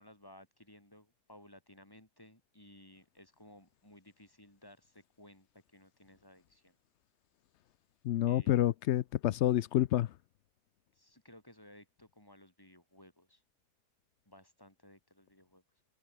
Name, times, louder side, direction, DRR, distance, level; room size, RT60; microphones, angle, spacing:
voice 1, 0.0-5.5 5.7-6.8 8.2-8.6 10.9-13.4 14.3-15.6, left 1 dB, 15° left, 4.6 m, -58 dB
voice 2, 8.0-10.1, left 13 dB, 75° left, 0.6 m, -28 dB
omnidirectional pair, 1.7 m